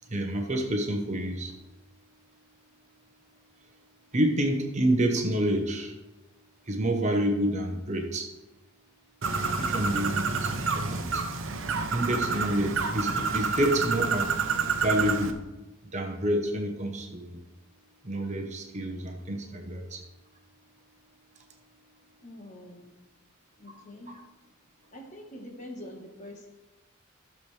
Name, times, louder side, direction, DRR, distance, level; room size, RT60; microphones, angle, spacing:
voice 1, 0.1-1.5 4.1-5.9 6.7-8.3 9.6-11.2 11.9-14.3 14.8-15.4 15.9-17.4 18.0-20.0, right 1 dB, 35° right, 3 dB, 1.0 m, -28 dB
Bird, 9.2-15.3, right 4 dB, 60° right, 0.8 m, -29 dB
voice 2, 22.2-22.9 23.6-24.2 24.9-26.5, left 1 dB, 35° left, 1 dB, 1.4 m, -44 dB
13.5 x 7.0 x 3.3 m, 1.1 s
head